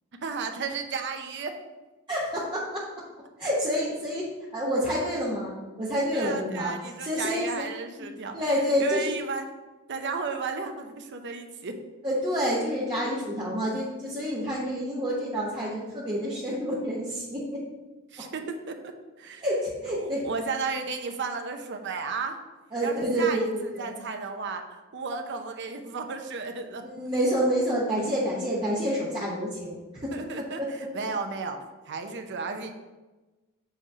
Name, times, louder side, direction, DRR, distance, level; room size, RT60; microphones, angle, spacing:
voice 1, 0.2-1.5 6.1-8.3 8.8-9.5 9.9-11.8 18.1-18.9 19.2-19.4 19.9-22.4 22.8-26.8 30.1-31.6 31.9-32.7, right 4 dB, 55° right, 5 dB, 0.7 m, -34 dB
voice 2, 2.1-2.9 3.4-6.7 7.0-7.5 8.0-8.1 8.3-9.2 12.0-17.6 19.4-20.3 22.7-23.9 26.8-30.1, equal, 25° right, -7 dB, 1.1 m, -28 dB
7.7 x 3.2 x 5.5 m, 1.2 s
head